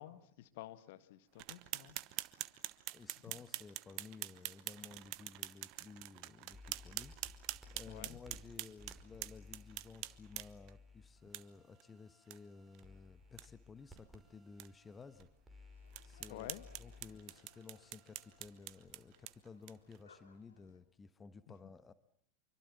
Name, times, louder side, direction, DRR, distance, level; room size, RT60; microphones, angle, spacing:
voice 1, 0.0-2.0 2.3-2.7 7.9-8.2 16.3-16.7 16.9-17.2 21.5-21.7, left 14 dB, 55° left, 1.8 m, -52 dB
sound 1, 1.4-10.7 11.3-11.4 11.8-11.9 12.3-12.4 12.7-12.8 13.2-13.5 14.0-14.1 14.6-14.7 15.2-15.3 15.9-20.0, right 18 dB, 50° right, 1.0 m, -46 dB
voice 2, 2.9-15.3 16.0-16.5 16.8-21.9, left 4 dB, 20° left, 1.3 m, -55 dB
sound 2, 6.5-18.5, left 3 dB, 10° right, 5.4 m, -59 dB
sound 3, 15.7-20.8, left 5 dB, 75° left, 3.3 m, -67 dB
26.0 x 24.5 x 7.3 m
figure-of-eight pair, 85°, 0 cm